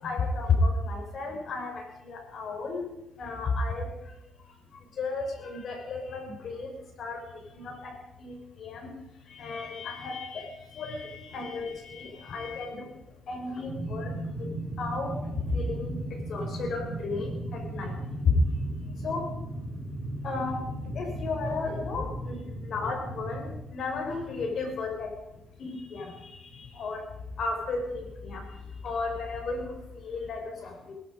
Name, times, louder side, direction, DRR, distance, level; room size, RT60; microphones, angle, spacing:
voice 1, 0.0-2.8 3.2-3.9 5.0-6.7 7.0-7.2 7.5-7.9 8.2-8.9 9.3-12.9 13.3-14.1 14.4-15.2 15.5-16.0 16.3-18.0 19.0-19.3 20.2-20.6 20.9-22.3 22.7-25.1 25.6-27.0 27.4-28.4 28.8-29.7 30.0-31.0, left 3 dB, 60° left, 2 dB, 6.1 m, -33 dB
sound 1, 13.6-23.5, right 1 dB, 40° right, 5.8 m, -36 dB
20.5 x 12.0 x 5.3 m, 0.91 s
cardioid pair, 90°, 0 cm